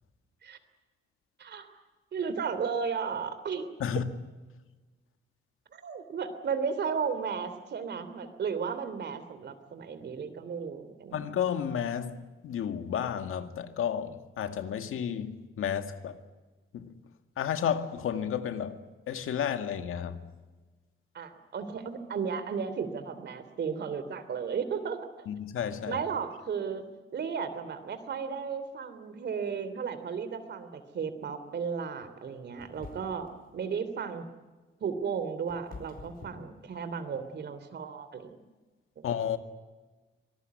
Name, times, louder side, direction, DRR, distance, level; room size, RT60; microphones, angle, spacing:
voice 1, 1.4-1.7 2.1-3.7 5.7-11.2 21.1-25.0 25.9-26.8 27.1-33.3 33.5-34.2 34.8-38.3 39.0-39.1, right 6 dB, 55° right, 3.0 m, -34 dB
voice 2, 11.1-12.2 12.4-16.2 16.7-17.0 17.4-18.8 19.1-20.2 25.3-26.0 39.0-39.4, left 8 dB, 85° left, 2.0 m, -32 dB
sound 1, 32.6-33.4 34.9-37.2, left 4 dB, 45° left, 4.9 m, -48 dB
25.0 x 19.0 x 9.4 m
wide cardioid pair, 155°, 21 cm